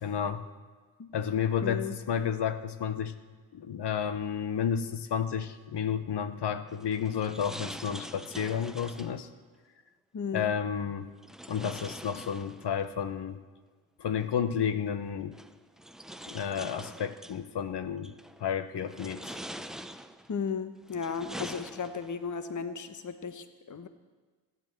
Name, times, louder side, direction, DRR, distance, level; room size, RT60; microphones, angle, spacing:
voice 1, 0.0-0.4 1.1-3.1 3.5-9.3 10.3-11.1 11.5-13.4 14.0-15.4 16.3-18.1 18.4-19.4, left 8 dB, 60° left, 11 dB, 1.1 m, -31 dB
voice 2, 1.6-2.0 10.1-10.5 20.3-23.9, left 6 dB, 40° left, 10 dB, 1.2 m, -35 dB
sound 1, 6.7-9.2 11.2-12.9 14.2-14.3 15.3-17.4 18.0-18.4 18.8-20.3 20.8-22.2, equal, ahead, 0.7 m, -44 dB
15.5 x 9.4 x 7.6 m, 1.4 s
supercardioid pair, 50°, 46 cm